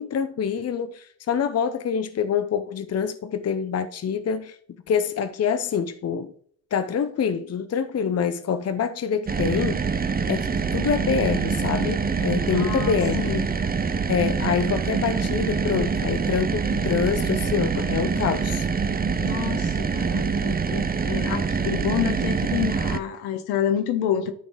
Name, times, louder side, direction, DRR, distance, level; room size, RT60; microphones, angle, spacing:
voice 1, 0.0-4.6 4.9-6.3 6.7-9.8 10.3-13.2 14.1-18.7 20.7-20.9 21.2-21.3, left 7 dB, 40° left, 0.8 m, -26 dB
sound 1, 9.3-23.0, right 5 dB, 25° right, 0.8 m, -25 dB
voice 2, 12.5-13.4 19.2-20.6 21.0-24.3, left 9 dB, 70° left, 1.2 m, -28 dB
13.0 x 5.3 x 3.1 m
hypercardioid pair, 45°, 39 cm